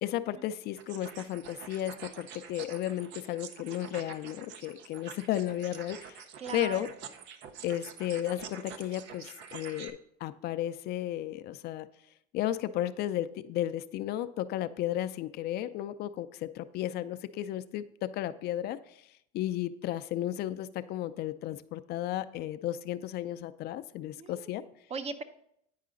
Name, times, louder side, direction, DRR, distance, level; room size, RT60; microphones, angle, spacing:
voice 1, 0.0-6.2 6.5-6.9 7.6-11.9 12.3-18.8 19.3-24.6, left 13 dB, 55° left, 12 dB, 0.4 m, -34 dB
sound 1, 0.8-9.9, right 7 dB, 65° right, 0.7 m, -47 dB
voice 2, 6.4-6.9 24.2-25.2, right 5 dB, 35° right, 11 dB, 0.6 m, -40 dB
9.3 x 4.8 x 3.8 m, 0.74 s
supercardioid pair, 110°, 20 cm